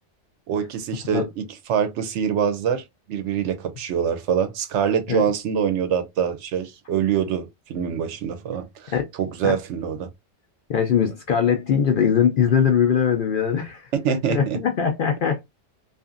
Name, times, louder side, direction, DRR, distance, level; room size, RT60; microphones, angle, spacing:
voice 1, 0.5-10.1 14.0-14.6, right 8 dB, 70° right, 0.9 m, -25 dB
voice 2, 10.7-15.4, left 7 dB, 60° left, 0.6 m, -21 dB
2.7 x 2.5 x 2.4 m
omnidirectional pair, 1.3 m